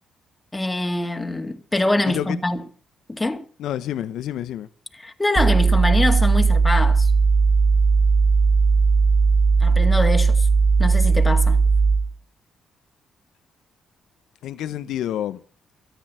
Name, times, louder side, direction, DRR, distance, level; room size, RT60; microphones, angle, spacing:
voice 1, 0.5-2.6 3.1-3.4 4.9-7.1 9.6-10.5 10.8-11.6, left 2 dB, 15° left, 2.1 m, -24 dB
voice 2, 2.1-2.4 3.6-4.7 14.4-15.4, left 11 dB, 80° left, 0.9 m, -28 dB
sound 1, 5.4-12.2, right 4 dB, 25° right, 1.2 m, -17 dB
14.0 x 10.0 x 7.6 m
cardioid pair, 90°, 0 cm